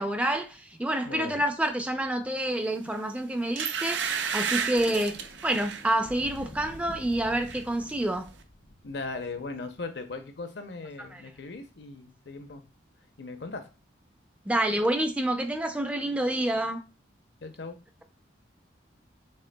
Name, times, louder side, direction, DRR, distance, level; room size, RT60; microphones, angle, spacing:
voice 1, 0.0-8.3 11.1-11.2 14.5-16.8, right 1 dB, 5° right, 0.4 m, -28 dB
voice 2, 1.0-1.4 8.8-12.6 13.2-13.7 17.4-17.8, left 3 dB, 65° left, 0.6 m, -38 dB
sound 1, 2.9-3.0 3.6-5.9 6.3-6.6 6.9-7.6 7.9-8.0, right 7 dB, 70° right, 0.5 m, -32 dB
Thunder, 4.0-10.3 11.3-11.6, equal, 85° left, 1.4 m, -49 dB
6.5 x 3.1 x 2.2 m
head